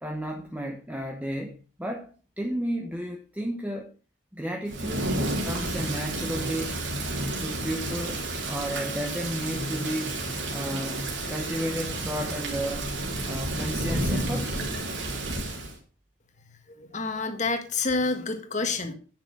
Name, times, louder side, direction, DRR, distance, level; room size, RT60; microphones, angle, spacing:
voice 1, 0.0-3.9 4.3-5.1 5.4-6.8 7.4-10.2 10.5-12.9 13.3-14.6, equal, 10° right, 2 dB, 1.0 m, -33 dB
Thunder / Rain, 4.7-15.8, right 2 dB, 70° right, 3.3 m, -31 dB
voice 2, 16.7-18.9, left 3 dB, 35° left, 7 dB, 1.6 m, -28 dB
10.5 x 6.7 x 6.2 m, 0.37 s
head